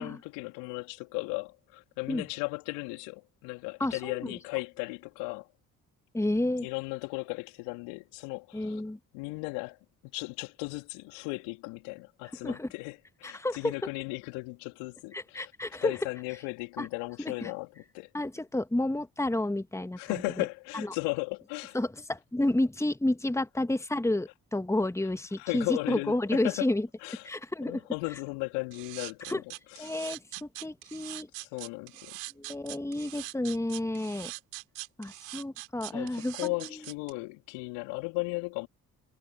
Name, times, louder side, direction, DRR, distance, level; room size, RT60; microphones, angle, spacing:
voice 1, 0.0-5.5 6.6-8.8 9.1-15.5 15.8-18.1 20.0-21.8 25.4-26.7 27.0-27.3 27.7-30.0 31.4-32.2 35.9-38.7, left 29 dB, 75° left, 2.3 m, -36 dB
voice 2, 3.8-4.3 6.1-6.7 8.5-9.0 12.4-12.7 13.2-13.7 15.1-15.9 16.8-16.9 17.2-17.5 18.1-20.4 20.7-21.0 21.7-26.9 27.2-27.8 29.3-29.4 29.8-31.3 32.3-34.3 35.0-36.5, left 1 dB, 5° left, 1.7 m, -30 dB
sound 1, 28.7-37.1, right 24 dB, 70° right, 2.6 m, -42 dB
figure-of-eight pair, 45°, 45 cm